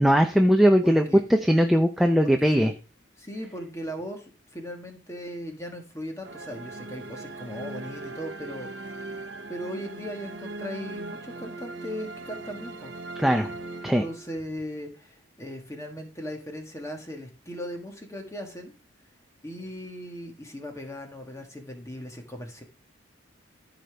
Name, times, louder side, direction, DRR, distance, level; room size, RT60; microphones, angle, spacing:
voice 1, 0.0-2.7 13.2-13.5 13.8-14.0, equal, ahead, 4 dB, 0.5 m, -20 dB
voice 2, 0.8-1.2 2.2-2.7 3.2-9.2 9.5-12.9 14.0-18.7 19.4-22.6, equal, 15° left, 3 dB, 1.5 m, -38 dB
sound 1, 6.2-14.6, right 2 dB, 60° right, 0.9 m, -39 dB
14.5 x 5.1 x 3.4 m, 0.35 s
head